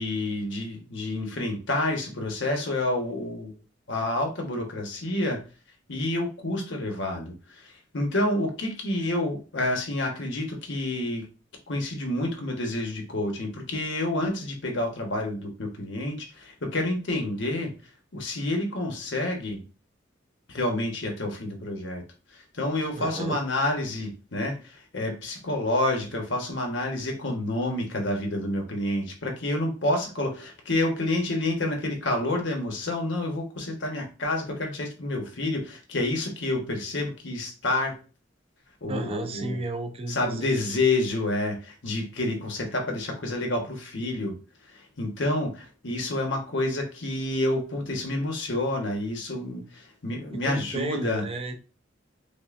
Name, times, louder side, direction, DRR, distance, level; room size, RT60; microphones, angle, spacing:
voice 1, 0.0-3.5 3.9-5.4 5.9-11.3 11.7-17.7 18.1-19.6 20.5-22.0 22.5-38.0 38.8-39.6 40.1-44.4 45.0-51.3, left 1 dB, 75° left, 1.0 m, -29 dB
voice 2, 23.0-23.4 38.9-40.5 50.3-51.6, right 2 dB, 30° right, 0.6 m, -32 dB
5.3 x 2.2 x 2.5 m
head